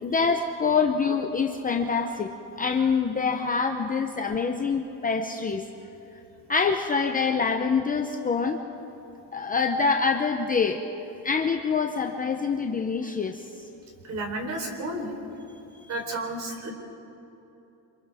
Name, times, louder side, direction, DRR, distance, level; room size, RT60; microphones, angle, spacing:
voice 1, 0.0-2.3 2.5-5.7 6.5-8.6 9.3-10.8 11.2-13.4, left 5 dB, 20° left, 4 dB, 0.7 m, -25 dB
voice 2, 14.1-15.4 15.9-16.7, right 1 dB, 40° right, 2 dB, 3.8 m, -32 dB
29.0 x 26.5 x 3.5 m, 3.0 s
cardioid pair, 160°, 43 cm